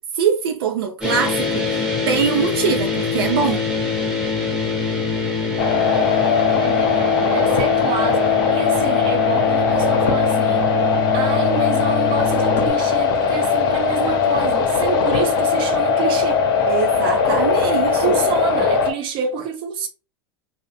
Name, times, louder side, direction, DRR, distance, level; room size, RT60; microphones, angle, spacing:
voice 1, 0.1-3.6 16.7-18.0, right 7 dB, 80° right, 0.4 m, -23 dB
sound 1, 1.0-12.7, left 4 dB, 5° right, 0.9 m, -24 dB
sound 2, 5.6-18.9, left 5 dB, 65° left, 0.7 m, -19 dB
voice 2, 6.6-10.7 11.1-16.4 17.3-17.4 17.7-19.9, right 6 dB, 45° right, 0.8 m, -28 dB
2.6 x 2.0 x 2.8 m
hypercardioid pair, 105°, 12 cm